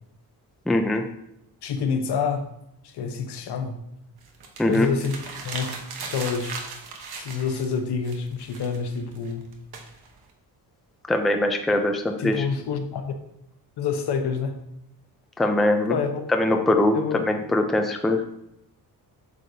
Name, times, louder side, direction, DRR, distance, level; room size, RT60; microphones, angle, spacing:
voice 1, 0.7-1.0 4.6-4.9 11.1-12.4 15.4-16.0 16.3-18.2, left 1 dB, ahead, 4 dB, 0.4 m, -22 dB
voice 2, 1.6-2.5 2.8-3.7 4.6-5.1 5.4-5.7 6.1-6.7 7.2-9.5 12.2-13.1 13.8-14.6 15.9-16.2 16.9-17.2, left 6 dB, 75° left, 6 dB, 1.0 m, -27 dB
sound 1, 4.2-10.3, right 4 dB, 65° right, 1.1 m, -38 dB
8.3 x 6.4 x 2.7 m, 0.80 s
wide cardioid pair, 175°, 39 cm